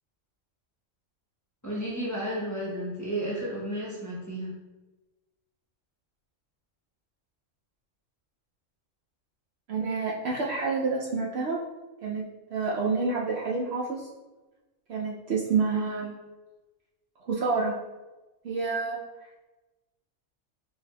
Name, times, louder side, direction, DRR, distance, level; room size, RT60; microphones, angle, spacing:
voice 1, 1.6-4.5, right 1 dB, 15° left, -6 dB, 0.7 m, -32 dB
voice 2, 9.7-11.6 12.0-12.2 12.5-14.1 14.9-16.2 17.2-17.8 18.4-19.0, right 4 dB, 65° right, -3 dB, 0.7 m, -28 dB
4.6 x 3.5 x 2.2 m, 1.1 s
omnidirectional pair, 1.3 m